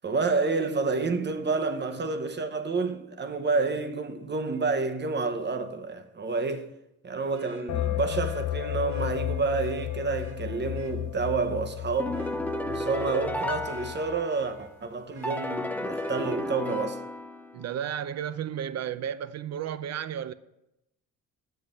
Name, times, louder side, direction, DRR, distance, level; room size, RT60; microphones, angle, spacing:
voice 1, 0.0-6.7 7.0-12.2 12.7-17.0, right 4 dB, 35° right, 0.9 m, -29 dB
Vehicle horn car horn honking, 4.5-4.6 7.3-11.0 11.5-11.7 12.1-14.7 15.1-16.9 18.7-18.8, right 3 dB, 75° right, 2.3 m, -53 dB
sound 1, 7.7-14.2, left 13 dB, 60° left, 0.5 m, -33 dB
sound 2, 12.0-14.6 15.2-17.7, left 1 dB, 5° left, 0.5 m, -33 dB
voice 2, 17.5-20.3, right 9 dB, 55° right, 0.6 m, -33 dB
7.4 x 5.6 x 6.9 m
cardioid pair, 75°, 32 cm